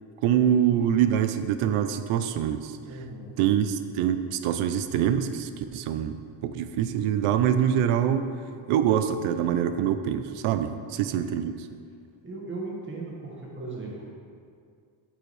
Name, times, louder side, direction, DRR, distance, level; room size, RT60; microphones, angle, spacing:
voice 1, 0.2-2.8 3.4-6.2 6.4-8.3 8.7-11.5, right 9 dB, 90° right, 10 dB, 0.6 m, -25 dB
voice 2, 2.9-3.4 11.0-11.4 12.2-14.1, right 3 dB, 25° right, -3 dB, 1.6 m, -38 dB
8.8 x 7.7 x 3.2 m, 2.2 s
cardioid pair, 130°, 49 cm